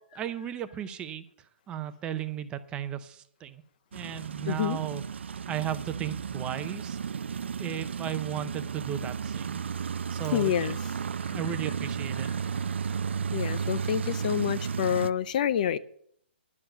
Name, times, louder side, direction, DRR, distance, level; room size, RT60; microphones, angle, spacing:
voice 1, 0.1-1.2 1.7-3.6 3.9-5.0 5.5-7.0 7.6-9.6 10.1-10.5 11.3-12.3, right 10 dB, 15° right, 11 dB, 0.6 m, -35 dB
sound 1, 3.9-15.1, right 6 dB, 75° right, 0.4 m, -33 dB
voice 2, 4.5-4.8 10.3-10.8 11.2-11.3 12.2-12.3 13.3-15.8, left 10 dB, 45° left, 15 dB, 0.5 m, -28 dB
11.0 x 7.0 x 7.7 m, 0.66 s
hypercardioid pair, 150°, 6 cm